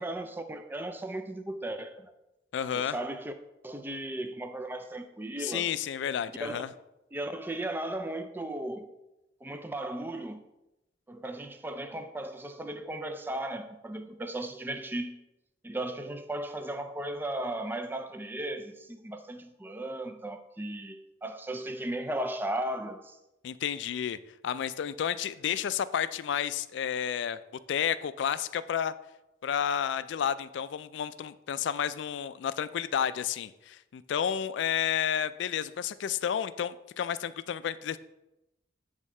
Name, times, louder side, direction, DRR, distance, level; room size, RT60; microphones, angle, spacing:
voice 1, 0.0-2.1 2.7-3.3 3.6-5.7 6.4-6.5 7.1-8.9 9.4-10.4 11.1-15.2 15.6-23.2, right 1 dB, 10° right, 0.3 m, -36 dB
voice 2, 2.5-3.0 5.4-6.7 23.4-24.2 24.4-27.4 27.7-28.9 29.4-38.0, left 8 dB, 70° left, 0.3 m, -31 dB
8.3 x 3.6 x 4.3 m
head